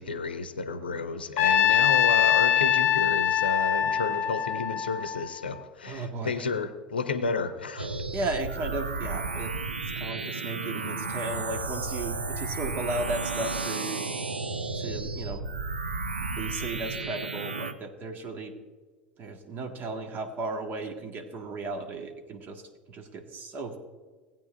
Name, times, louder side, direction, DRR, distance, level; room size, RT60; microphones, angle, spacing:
voice 1, 0.0-7.9, left 4 dB, 75° left, 10 dB, 0.7 m, -31 dB
Trumpet, 1.4-5.6, left 9 dB, 45° left, 0.9 m, -23 dB
voice 2, 5.9-6.4 8.1-9.5 10.0-14.1 14.7-15.5 16.2-18.5 19.2-22.6 22.9-23.8, right 2 dB, 40° right, 4 dB, 1.6 m, -35 dB
sound 1, 7.8-17.7, right 3 dB, 85° right, 0.6 m, -33 dB
18.5 x 9.0 x 2.5 m, 1.4 s
figure-of-eight pair, 75°, 5 cm